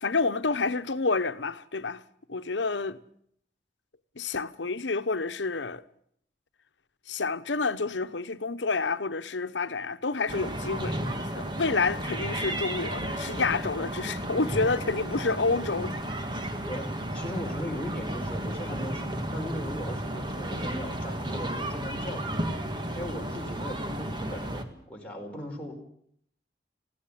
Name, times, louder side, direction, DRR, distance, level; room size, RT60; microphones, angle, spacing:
voice 1, 0.0-2.0 2.3-3.0 4.1-5.8 7.1-16.0, left 3 dB, 90° left, 1.0 m, -29 dB
sound 1, 10.3-24.6, right 1 dB, 25° right, 1.8 m, -33 dB
voice 2, 17.1-22.3 22.9-25.7, equal, 5° left, 4.5 m, -38 dB
20.5 x 16.5 x 8.7 m
head